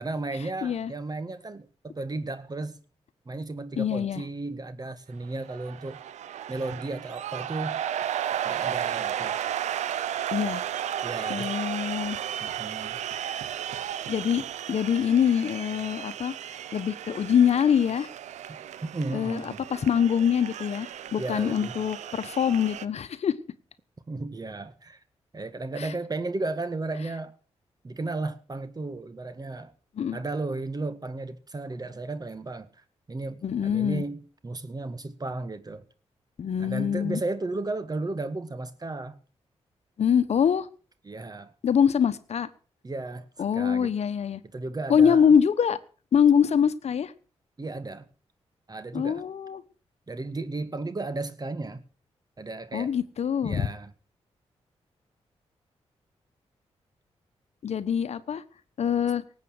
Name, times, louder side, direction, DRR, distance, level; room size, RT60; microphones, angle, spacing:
voice 1, 0.0-2.8 3.3-6.0 6.5-7.8 8.4-9.4 11.0-11.5 12.4-13.0 18.5-18.6 18.9-19.6 21.2-21.7 24.1-25.0 25.3-27.4 27.8-29.7 30.1-32.7 33.1-35.8 36.6-39.2 41.0-41.5 42.8-43.3 43.5-43.9 44.5-45.3 47.6-48.1 48.7-49.2 50.1-51.8 52.4-52.9 53.4-53.9, right 2 dB, 35° right, 1.9 m, -34 dB
voice 2, 3.8-4.2 10.3-10.6 11.3-12.2 14.1-14.4 14.7-18.1 19.1-23.3 25.8-25.9 30.0-30.2 33.4-34.0 36.4-37.2 40.0-40.7 41.6-42.5 43.4-44.4 44.9-45.8 46.1-47.1 48.9-49.6 52.7-53.7 57.6-58.4 58.8-59.2, left 8 dB, 65° left, 1.1 m, -24 dB
sound 1, 5.2-22.9, right 10 dB, 85° right, 0.7 m, -34 dB
18.0 x 8.4 x 6.5 m
cardioid pair, 55°, 12 cm